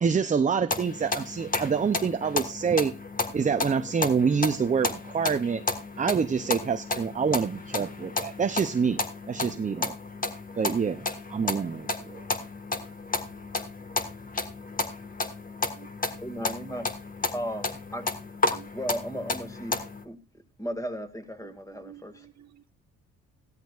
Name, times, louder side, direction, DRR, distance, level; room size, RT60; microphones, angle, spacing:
voice 1, 0.0-3.0 3.3-5.6 6.0-9.0 9.3-10.0 10.6-12.2, right 6 dB, 25° right, 0.6 m, -26 dB
sound 1, 0.7-20.0, left 3 dB, 30° left, 1.7 m, -32 dB
voice 2, 16.2-16.9 17.3-18.1 18.7-20.2 20.6-22.3, equal, 10° left, 2.2 m, -35 dB
voice 3, 21.4-22.7, right 11 dB, 60° right, 1.0 m, -51 dB
16.5 x 13.0 x 2.5 m
cardioid pair, 90°, 30 cm